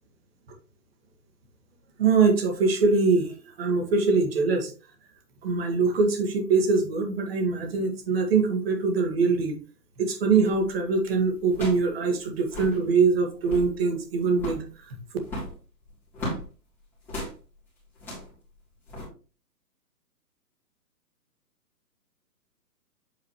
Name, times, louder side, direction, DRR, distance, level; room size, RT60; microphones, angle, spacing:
voice 1, 2.0-4.7 5.4-9.6 10.0-15.0, right 4 dB, 35° right, 4 dB, 2.0 m, -23 dB
sound 1, 10.5-10.8 11.5-11.9 12.2-12.3 12.4-12.8 13.3-13.7 14.3-14.7 15.2-16.5 17.1-17.4 17.9-18.3 18.9-19.1, left 1 dB, 5° left, 3.3 m, -35 dB
8.6 x 5.1 x 3.2 m, 0.36 s
hypercardioid pair, 165°, 49 cm